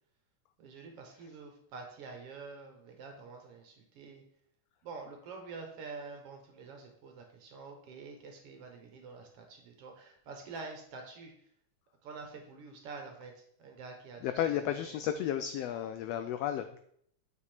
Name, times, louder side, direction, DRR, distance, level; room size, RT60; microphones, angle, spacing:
voice 1, 0.6-4.2 4.8-11.3 12.0-14.6 14.9-15.0, right 4 dB, 60° right, 3 dB, 1.8 m, -47 dB
voice 2, 14.2-16.8, left 10 dB, 90° left, 9 dB, 1.4 m, -33 dB
8.4 x 5.3 x 4.4 m, 0.68 s
omnidirectional pair, 3.4 m